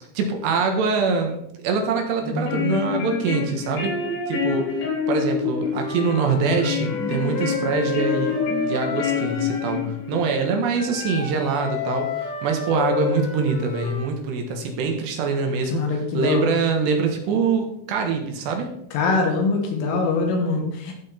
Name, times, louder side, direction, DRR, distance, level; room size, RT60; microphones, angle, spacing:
voice 1, 0.1-4.0 4.3-4.7 5.1-8.4 8.6-18.8, right 4 dB, 70° right, 3 dB, 3.2 m, -24 dB
sound 1, 2.2-10.3, left 6 dB, 70° left, 5.8 m, -27 dB
Wind instrument woodwind instrument, 5.7-9.8 10.7-14.1, left 6 dB, 50° left, 3.4 m, -30 dB
voice 2, 15.7-16.4 18.9-20.9, left 4 dB, 90° left, 2 dB, 4.6 m, -23 dB
15.0 x 6.2 x 4.3 m, 0.76 s
omnidirectional pair, 5.5 m